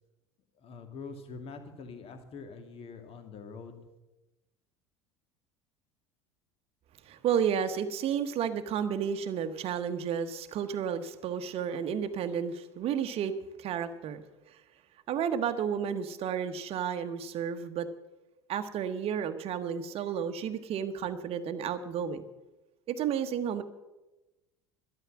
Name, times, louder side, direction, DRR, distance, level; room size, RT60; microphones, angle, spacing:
voice 1, 0.6-3.8, left 4 dB, 40° left, 6 dB, 2.2 m, -44 dB
voice 2, 7.0-13.3 13.6-14.2 14.5-14.6 15.1-17.9 18.5-22.2 22.9-23.6, right 8 dB, 40° right, 10 dB, 1.1 m, -32 dB
12.5 x 12.0 x 6.1 m, 1.0 s
figure-of-eight pair, 70°, 15 cm